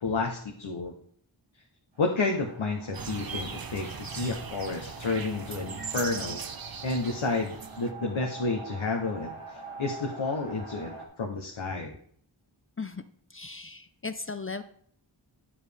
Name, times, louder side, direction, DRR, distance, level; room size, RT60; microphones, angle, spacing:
voice 1, 0.0-0.9 2.0-6.4 6.8-11.9, left 3 dB, 80° left, 2 dB, 0.9 m, -31 dB
sound 1, 1.9-11.1, right 3 dB, 90° right, 1.3 m, -45 dB
sound 2, 2.9-7.9, right 6 dB, 50° right, 0.7 m, -39 dB
voice 2, 13.3-14.6, left 4 dB, 30° left, 10 dB, 0.5 m, -37 dB
8.7 x 7.2 x 3.4 m, 0.62 s
wide cardioid pair, 45°, 46 cm